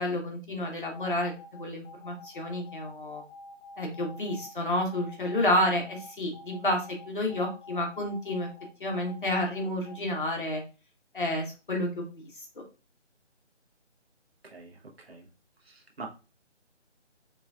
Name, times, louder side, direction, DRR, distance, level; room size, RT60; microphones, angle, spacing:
voice 1, 0.0-3.2 3.8-8.5 8.8-10.6 11.1-12.5, left 1 dB, 45° left, 0 dB, 1.2 m, -30 dB
sound 1, 0.9-10.0, left 2 dB, 85° left, 1.1 m, -48 dB
voice 2, 14.4-15.3 15.6-16.1, right 3 dB, 55° right, 1 dB, 1.1 m, -45 dB
3.8 x 3.2 x 2.4 m, 0.32 s
figure-of-eight pair, 170°, 36 cm